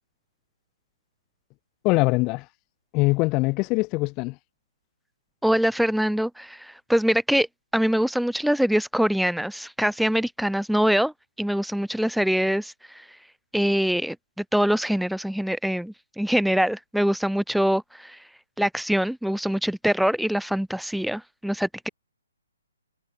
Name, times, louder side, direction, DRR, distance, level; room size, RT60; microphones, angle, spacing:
voice 1, 1.8-2.5 2.9-4.4, left 24 dB, 25° left, 0.8 m, -22 dB
voice 2, 5.4-7.5 7.7-12.7 13.5-18.2 18.6-21.9, equal, ahead, 0.5 m, -24 dB
hypercardioid pair, 150°, 0 cm